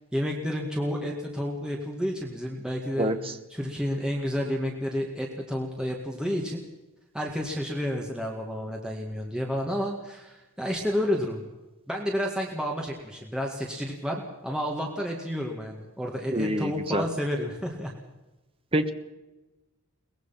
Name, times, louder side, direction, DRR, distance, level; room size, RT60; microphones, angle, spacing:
voice 1, 0.1-3.1 3.5-6.6 7.1-11.4 11.9-17.9, equal, 5° right, -1 dB, 2.0 m, -30 dB
voice 2, 3.0-3.4 16.3-17.0 18.7-18.9, right 1 dB, 25° right, 8 dB, 1.2 m, -26 dB
22.5 x 20.0 x 5.9 m, 1.1 s
head